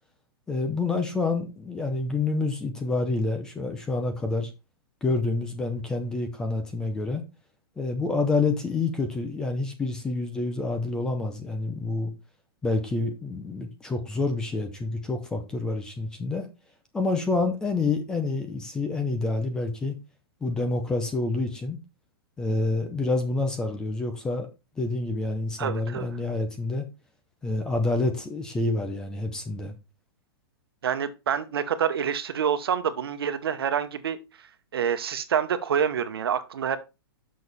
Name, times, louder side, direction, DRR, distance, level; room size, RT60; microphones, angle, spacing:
voice 1, 0.5-4.5 5.0-7.2 7.8-12.1 12.6-16.5 16.9-19.9 20.4-21.8 22.4-24.5 24.8-26.8 27.4-29.7, left 3 dB, 5° left, 0.6 m, -28 dB
voice 2, 25.6-26.1 30.8-34.2 34.7-36.8, right 8 dB, 70° right, 1.1 m, -27 dB
7.1 x 6.2 x 4.1 m
hypercardioid pair, 175°, 13 cm